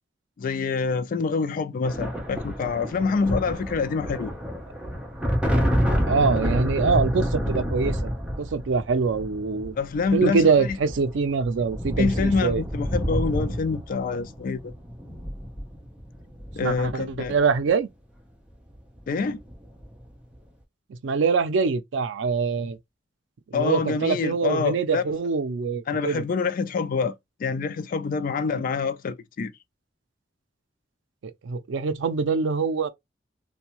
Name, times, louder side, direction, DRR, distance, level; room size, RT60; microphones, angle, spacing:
voice 1, 0.4-4.3 9.8-10.8 12.0-14.7 16.5-17.3 19.1-19.4 23.5-25.0 25.9-27.1 27.4-29.5, left 4 dB, 50° left, 0.3 m, -26 dB
sound 1, 1.8-17.6 18.8-19.0 19.3-20.0, equal, 5° right, 0.6 m, -29 dB
voice 2, 6.1-8.1 8.4-9.8 10.1-12.6 16.6-17.9 20.9-22.8 23.5-26.2 31.2-32.9, right 5 dB, 90° right, 0.4 m, -24 dB
2.6 x 2.2 x 2.8 m
head